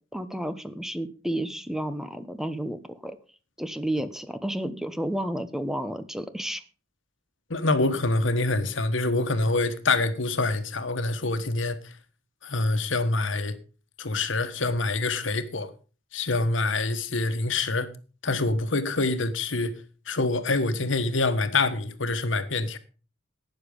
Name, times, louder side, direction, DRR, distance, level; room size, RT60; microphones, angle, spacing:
voice 1, 0.1-3.2 3.6-6.6, right 1 dB, ahead, 0.9 m, -31 dB
voice 2, 7.5-11.8 12.4-13.5 14.0-15.7 16.1-17.9 18.2-19.7 20.1-22.8, left 3 dB, 75° left, 1.4 m, -26 dB
12.0 x 9.3 x 5.3 m
head